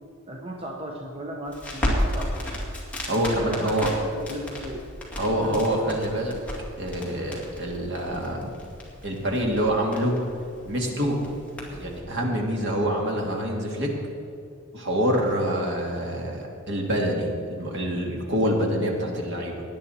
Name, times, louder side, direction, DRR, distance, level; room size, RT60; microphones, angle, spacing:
voice 1, 0.3-2.5 3.4-4.8 5.2-5.8, right 1 dB, 25° right, 0 dB, 1.0 m, -36 dB
Crackle, 1.5-12.0, equal, 5° left, 2.4 m, -33 dB
voice 2, 3.1-3.9 5.2-6.4 6.8-8.6 9.0-10.1 10.6-11.2 11.7-13.9 14.7-19.6, equal, 55° right, 0 dB, 2.3 m, -26 dB
18.0 x 10.5 x 4.4 m, 2.5 s
head